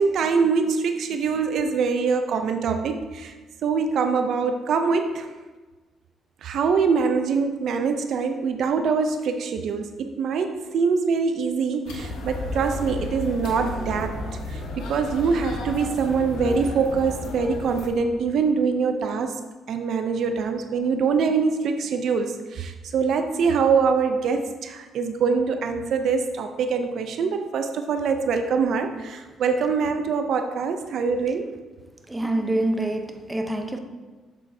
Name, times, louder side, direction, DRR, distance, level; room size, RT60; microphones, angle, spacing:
voice 1, 0.0-3.3 3.6-5.3 6.4-14.2 14.5-19.4 19.7-31.5, right 5 dB, 70° right, 0.5 m, -24 dB
sound 1, 11.8-17.9, left 2 dB, 90° left, 1.2 m, -33 dB
voice 2, 32.1-33.8, right 1 dB, 10° right, 0.7 m, -26 dB
7.5 x 7.2 x 2.7 m
cardioid pair, 90°, 0 cm